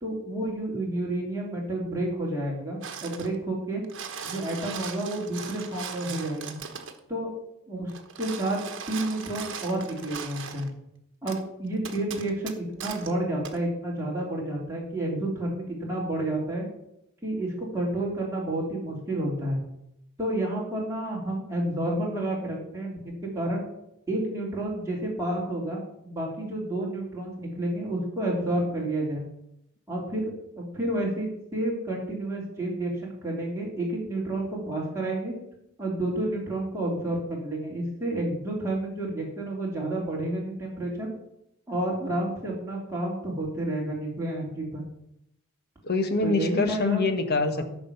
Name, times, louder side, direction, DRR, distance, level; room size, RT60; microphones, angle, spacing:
voice 1, 0.0-3.8 4.2-6.6 7.1-7.3 7.7-7.9 8.2-8.6 8.9-10.7 11.2-16.7 17.2-19.6 20.2-23.6 24.1-29.2 29.9-35.3 35.8-41.1 41.7-44.8 46.2-47.0 47.5-47.6, right 1 dB, 15° right, -4 dB, 3.0 m, -30 dB
sound 1, 2.8-3.3 3.7-7.0 7.9-10.7 11.3-11.4 11.8-13.1 13.4-13.6, right 6 dB, 60° right, 1.2 m, -39 dB
voice 2, 45.8-47.6, left 3 dB, 50° left, 7 dB, 1.4 m, -25 dB
13.5 x 5.2 x 6.9 m, 0.79 s
head